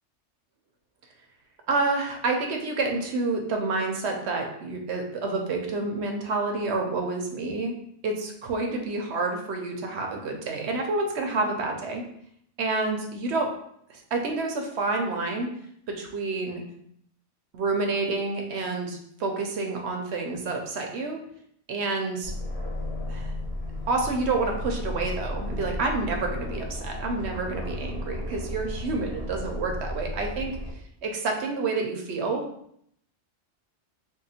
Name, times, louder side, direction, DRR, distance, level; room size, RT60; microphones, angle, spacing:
voice 1, 1.7-7.7 8.0-12.0 12.6-13.5 13.9-15.5 15.9-16.6 17.5-21.2 21.7-22.3 23.1-23.3 23.9-30.6 31.0-32.4, right 3 dB, 70° right, 3 dB, 0.9 m, -28 dB
Aircraft, 22.2-30.7, left 1 dB, 35° left, 0.8 m, -34 dB
3.6 x 2.2 x 4.1 m, 0.71 s
omnidirectional pair, 1.2 m